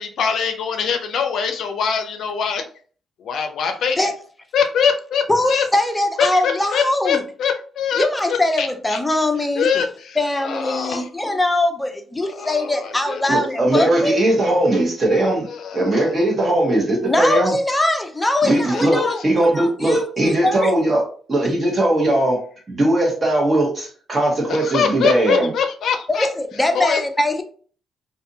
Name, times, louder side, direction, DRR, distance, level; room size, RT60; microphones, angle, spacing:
voice 1, 0.0-2.6 3.2-4.1 4.5-5.6 6.2-8.0 8.3-9.0 9.6-10.2 10.4-11.1 12.4-13.5 15.5-16.0 18.5-19.1 19.9-20.0 24.5-26.3 26.7-27.0, left 6 dB, 70° left, 0.4 m, -23 dB
voice 2, 5.3-7.2 8.0-9.7 10.2-14.2 17.0-20.7 26.1-27.4, left 1 dB, 10° left, 0.5 m, -21 dB
voice 3, 13.3-15.5 15.7-17.5 18.4-21.0 21.3-22.4 22.7-25.5, right 1 dB, 30° right, 1.2 m, -19 dB
2.5 x 2.5 x 2.6 m
cardioid pair, 90°, 0 cm